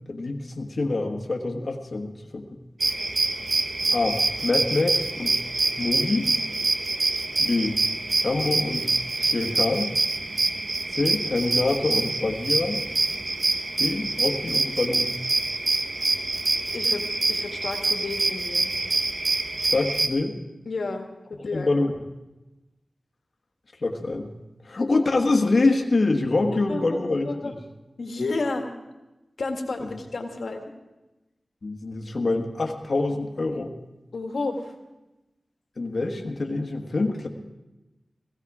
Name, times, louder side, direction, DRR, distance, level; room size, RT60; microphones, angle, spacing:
voice 1, 0.1-2.5 3.9-5.4 5.8-6.3 7.4-7.8 8.2-9.9 10.9-12.8 13.8-15.1 19.7-20.4 21.4-21.9 23.8-24.3 24.6-27.6 29.8-29.9 31.6-33.7 35.8-37.3, left 2 dB, 60° left, 3 dB, 1.4 m, -25 dB
sound 1, 2.8-20.1, right 3 dB, 60° right, 1.1 m, -26 dB
voice 2, 16.7-18.7 20.7-21.8 26.7-27.5 28.0-28.7 29.4-30.6 34.1-34.7, left 3 dB, 85° left, 3 dB, 1.8 m, -31 dB
17.5 x 15.5 x 4.9 m, 1.0 s
wide cardioid pair, 65°, 0 cm